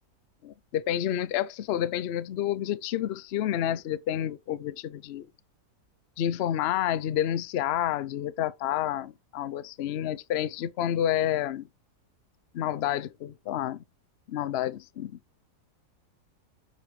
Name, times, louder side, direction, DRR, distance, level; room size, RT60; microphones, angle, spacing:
voice 1, 0.4-5.3 6.2-11.7 12.5-13.8 14.3-15.2, left 11 dB, 60° left, 0.7 m, -29 dB
9.2 x 7.7 x 3.2 m
omnidirectional pair, 1.7 m